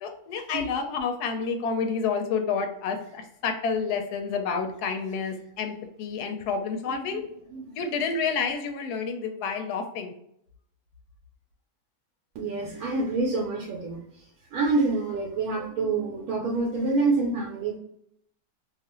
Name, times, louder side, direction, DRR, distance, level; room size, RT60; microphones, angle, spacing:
voice 1, 0.0-7.2 7.8-10.1, left 5 dB, 90° left, 5 dB, 1.1 m, -29 dB
voice 2, 6.9-7.2 7.5-7.8 12.3-14.0 14.5-17.8, right 3 dB, 80° right, -2 dB, 1.1 m, -27 dB
2.6 x 2.4 x 2.9 m, 0.72 s
omnidirectional pair, 1.6 m